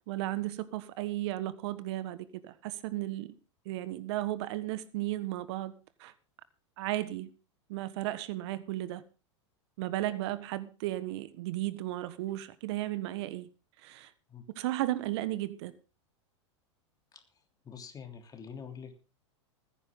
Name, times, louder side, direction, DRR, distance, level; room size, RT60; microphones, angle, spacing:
voice 1, 0.1-3.3 3.6-5.7 6.0-6.1 6.8-7.3 7.7-9.0 9.8-13.5 13.8-14.1 14.5-15.7, right 15 dB, 60° right, 15 dB, 1.4 m, -34 dB
voice 2, 17.6-19.0, left 6 dB, 25° left, 7 dB, 3.2 m, -45 dB
20.5 x 10.0 x 3.7 m, 0.33 s
hypercardioid pair, 110°, 16 cm